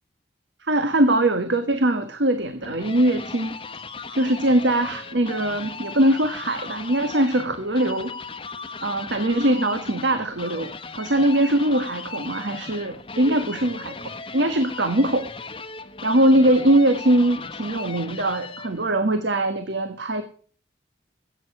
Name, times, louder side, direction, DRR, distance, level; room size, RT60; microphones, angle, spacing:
voice 1, 0.6-3.6 4.1-8.1 8.8-15.3 16.0-20.2, right 1 dB, 70° right, 8 dB, 1.3 m, -21 dB
sound 1, 2.4-18.9, left 4 dB, 25° left, 1.0 m, -37 dB
15.5 x 9.1 x 6.7 m, 0.43 s
head